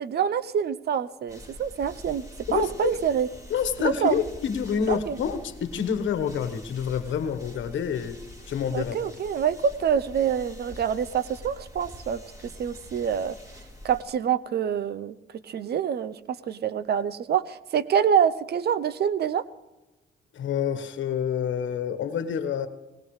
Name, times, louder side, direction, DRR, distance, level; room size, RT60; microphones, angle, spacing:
voice 1, 0.0-2.3 2.5-3.3 3.8-4.2 4.9-5.2 8.7-12.2 12.6-13.4 13.8-15.2 15.5-16.2 16.5-19.4, right 8 dB, 55° right, 15 dB, 0.7 m, -26 dB
sound 1, 1.3-14.0, equal, 15° right, 4.0 m, -45 dB
voice 2, 2.5-3.0 3.5-8.2 8.5-8.9 20.3-22.7, left 8 dB, 70° left, 10 dB, 1.3 m, -28 dB
24.0 x 18.5 x 3.2 m, 1.1 s
cardioid pair, 90°, 20 cm